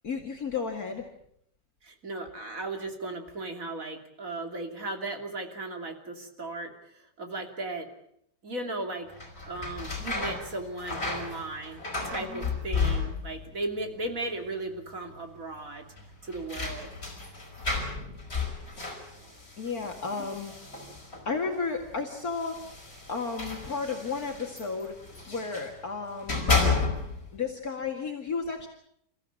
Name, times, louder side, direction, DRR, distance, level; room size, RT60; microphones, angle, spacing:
voice 1, 0.0-1.1 12.2-12.5 19.6-20.5 21.3-22.6 23.1-25.0 25.3-26.6 27.3-28.7, left 4 dB, 55° left, 1 dB, 2.6 m, -33 dB
voice 2, 1.8-7.9 8.4-9.1 9.5-15.9 16.2-16.9, right 2 dB, 45° right, 4 dB, 3.3 m, -36 dB
sound 1, 9.1-13.5 13.8-14.5 14.8-14.9 15.9-21.4 22.2-25.7 26.1-27.3, left 4 dB, 35° left, 5.6 m, -32 dB
29.0 x 15.0 x 8.6 m, 0.71 s
omnidirectional pair, 1.9 m